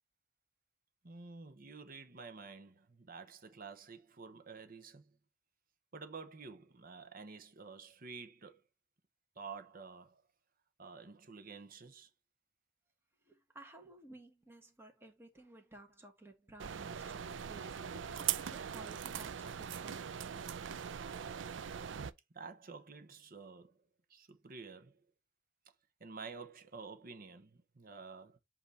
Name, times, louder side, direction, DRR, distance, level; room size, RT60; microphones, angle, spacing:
voice 1, 1.0-5.2 5.9-8.6 9.4-10.2 10.8-12.1 22.3-23.8 24.1-25.0 26.0-28.4, right 4 dB, 50° right, 1.0 m, -50 dB
voice 2, 13.2-20.1, right 2 dB, 15° right, 1.5 m, -56 dB
sound 1, 16.6-22.1, right 8 dB, 75° right, 0.5 m, -41 dB
8.0 x 2.8 x 4.7 m
head